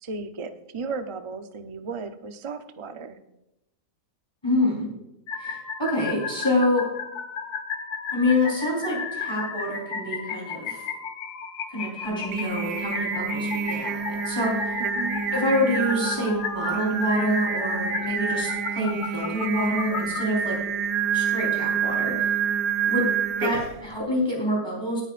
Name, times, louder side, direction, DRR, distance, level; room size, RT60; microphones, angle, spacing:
voice 1, 0.0-3.2 14.8-15.2, right 4 dB, 50° right, 7 dB, 0.3 m, -35 dB
voice 2, 4.4-4.9 5.4-6.9 8.1-10.9 11.7-14.8 15.3-20.6 21.1-22.3 22.9-23.0 23.4-25.0, left 1 dB, 15° left, -3 dB, 4.1 m, -26 dB
sound 1, 5.3-20.2, left 6 dB, 75° left, 1.6 m, -34 dB
Singing, 12.1-23.8, right 7 dB, 85° right, 1.4 m, -28 dB
18.0 x 9.2 x 2.5 m, 0.88 s
omnidirectional pair, 1.7 m